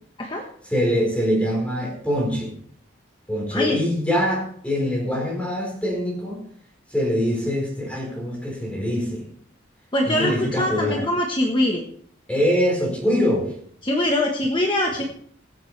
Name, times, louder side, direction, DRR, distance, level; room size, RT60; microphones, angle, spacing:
voice 1, 0.6-2.5 3.3-6.4 6.9-9.3 10.0-11.1 12.3-13.5, equal, 5° left, -1 dB, 4.4 m, -23 dB
voice 2, 3.5-3.8 9.9-11.8 13.8-15.0, left 1 dB, 25° left, 0 dB, 1.2 m, -23 dB
23.5 x 7.9 x 3.3 m, 0.62 s
head